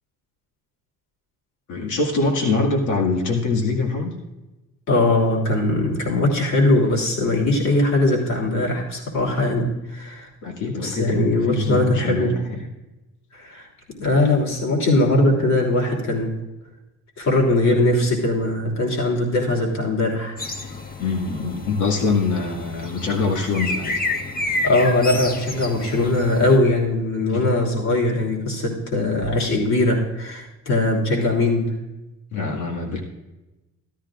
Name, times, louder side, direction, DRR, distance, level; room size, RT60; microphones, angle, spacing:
voice 1, 1.7-4.1 10.4-12.7 21.0-24.0 27.3-27.5 32.3-33.0, left 3 dB, 80° left, 1 dB, 2.1 m, -24 dB
voice 2, 4.9-10.3 10.8-12.3 13.3-13.7 14.0-16.3 17.2-20.4 24.6-31.7, left 2 dB, 60° left, -1 dB, 3.2 m, -20 dB
sound 1, 20.4-26.6, left 2 dB, 30° left, 1.0 m, -30 dB
13.5 x 13.5 x 2.5 m, 1.0 s
cardioid pair, 90°, 30 cm